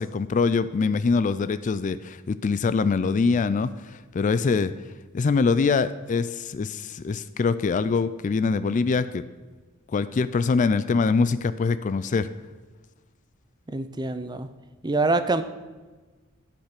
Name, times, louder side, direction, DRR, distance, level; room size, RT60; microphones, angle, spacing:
voice 1, 0.0-4.7 5.1-9.2 9.9-12.3, left 4 dB, 35° left, 14 dB, 0.3 m, -24 dB
voice 2, 13.7-14.5 14.8-15.4, right 3 dB, 20° right, 11 dB, 0.5 m, -25 dB
12.0 x 5.6 x 5.9 m, 1.3 s
head